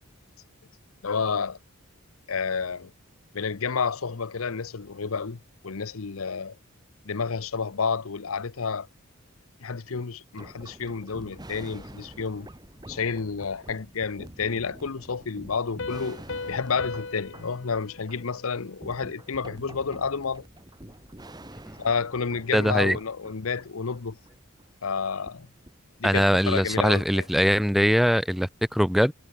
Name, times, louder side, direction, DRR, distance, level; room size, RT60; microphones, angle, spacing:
voice 1, 1.0-1.6 2.3-2.9 3.3-6.6 7.0-8.9 9.6-12.5 12.9-16.2 16.5-20.5 21.8-24.2 24.8-25.5 26.0-27.2, left 5 dB, 80° left, 0.8 m, -30 dB
sound 1, 10.4-25.0 25.2-25.3 25.7-25.8 26.3-27.7, right 1 dB, 20° right, 1.7 m, -47 dB
Piano, 15.8-19.2, left 3 dB, 60° left, 1.1 m, -38 dB
voice 2, 22.5-23.0 26.0-29.1, equal, ahead, 0.7 m, -22 dB
head